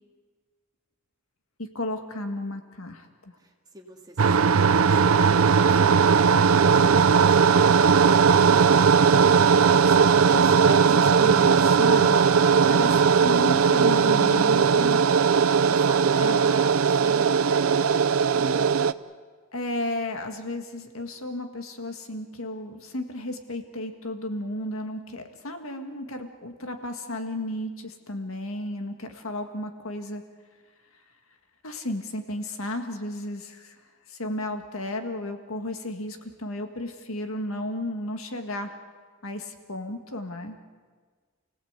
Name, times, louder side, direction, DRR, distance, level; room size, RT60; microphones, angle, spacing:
voice 1, 1.6-3.1 9.4-12.2 12.7-15.0 16.1-16.4 19.5-30.2 31.6-33.8 34.1-38.8 39.2-40.6, left 1 dB, 70° left, 6 dB, 1.9 m, -33 dB
voice 2, 3.4-8.8 15.6-18.8, right 1 dB, 20° right, 1 dB, 2.3 m, -43 dB
sound 1, 4.2-18.9, right 6 dB, 75° right, 0.6 m, -19 dB
29.0 x 17.0 x 8.2 m, 1.5 s
head